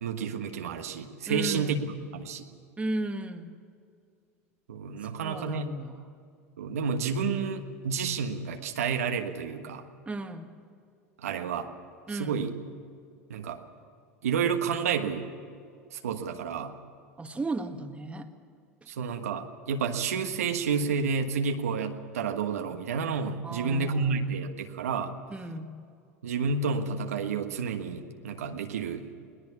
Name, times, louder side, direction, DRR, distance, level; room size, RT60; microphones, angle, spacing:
voice 1, 0.0-1.8 2.1-2.5 4.7-5.7 6.6-9.8 11.2-11.7 12.2-12.5 13.3-13.6 14.2-15.2 15.9-16.7 18.9-25.1 26.2-29.1, right 5 dB, 80° right, 5 dB, 1.4 m, -30 dB
voice 2, 1.3-1.8 2.8-3.5 5.2-6.1 10.1-10.5 12.1-12.4 17.2-18.3 23.4-24.5 25.3-25.7, right 2 dB, 15° right, 5 dB, 1.8 m, -35 dB
21.0 x 19.0 x 7.1 m, 2.3 s
hypercardioid pair, 85°, 8 cm